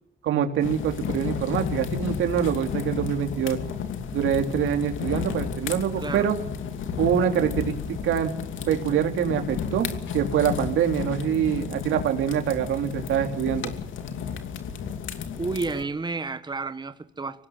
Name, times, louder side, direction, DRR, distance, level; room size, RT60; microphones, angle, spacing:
voice 1, 0.2-3.6 4.1-6.4 7.0-8.3 8.7-9.9 10.1-13.7, right 9 dB, 80° right, 3.3 m, -25 dB
sound 1, 0.6-15.8, left 7 dB, 75° left, 2.7 m, -32 dB
voice 2, 15.4-17.5, right 3 dB, 20° right, 1.6 m, -31 dB
25.0 x 18.5 x 8.0 m
cardioid pair, 90°, 20 cm